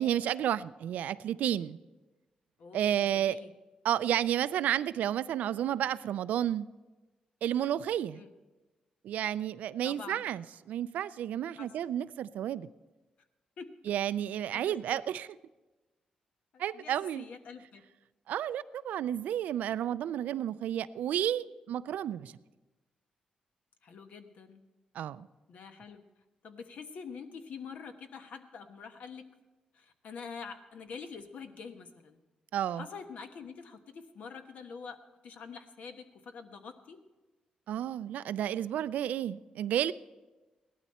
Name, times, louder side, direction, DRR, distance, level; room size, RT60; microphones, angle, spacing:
voice 1, 0.0-1.8 2.7-3.4 3.8-6.7 7.4-8.2 9.0-12.7 13.9-15.3 16.6-17.3 18.3-22.3 24.9-25.3 32.5-32.8 37.7-39.9, right 11 dB, 90° right, 16 dB, 0.4 m, -31 dB
voice 2, 2.6-3.5 8.1-8.3 9.8-10.2 11.6-11.7 13.6-13.9 14.5-15.0 16.5-17.8 23.8-24.6 25.5-26.0 26.4-29.2 29.7-32.2 32.7-35.0 35.2-37.0, left 5 dB, 70° left, 7 dB, 1.2 m, -46 dB
17.0 x 12.0 x 4.3 m, 1.2 s
cardioid pair, 95°, 3 cm